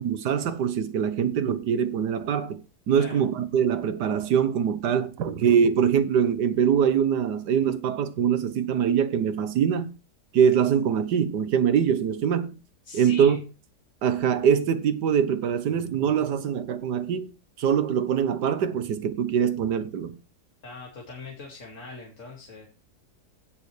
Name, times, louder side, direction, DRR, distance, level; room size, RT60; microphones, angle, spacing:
voice 1, 0.0-2.6 2.9-9.9 10.3-12.6 12.9-13.4 14.0-17.3 17.6-20.2, right 8 dB, 90° right, 1.6 m, -23 dB
voice 2, 2.9-3.2 12.9-13.4 20.6-22.7, left 3 dB, 50° left, 2.5 m, -41 dB
16.5 x 6.5 x 3.3 m
omnidirectional pair, 1.7 m